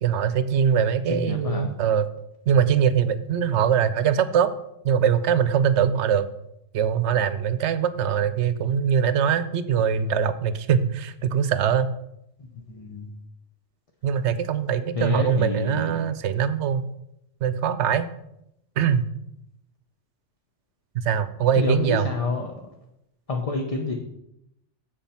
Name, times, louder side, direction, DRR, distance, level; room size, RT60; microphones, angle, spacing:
voice 1, 0.0-2.1 2.5-4.5 4.8-6.3 6.7-11.9 14.0-16.8 17.4-18.1 18.8-19.0 20.9-22.1, right 8 dB, 70° right, 14 dB, 0.9 m, -22 dB
voice 2, 1.1-1.7 12.7-13.1 15.0-15.9 21.5-22.5 23.3-23.9, left 3 dB, 30° left, 2 dB, 0.9 m, -28 dB
7.3 x 7.2 x 5.7 m, 0.82 s
omnidirectional pair, 1.2 m